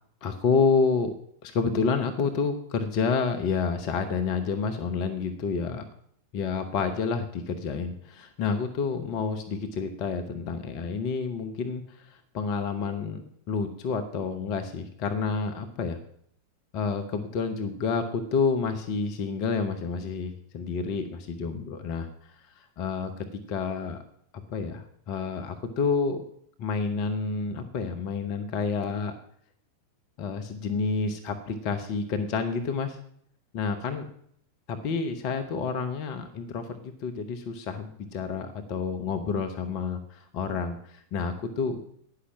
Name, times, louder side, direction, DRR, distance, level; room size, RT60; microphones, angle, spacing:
voice 1, 0.2-1.1 1.4-5.8 6.3-13.2 13.5-16.0 16.7-24.0 24.5-26.2 26.6-29.1 30.2-33.0 33.5-34.1 34.7-41.8, left 5 dB, 40° left, 7 dB, 1.0 m, -29 dB
9.9 x 5.8 x 7.4 m, 0.65 s
figure-of-eight pair, 90°, 0 cm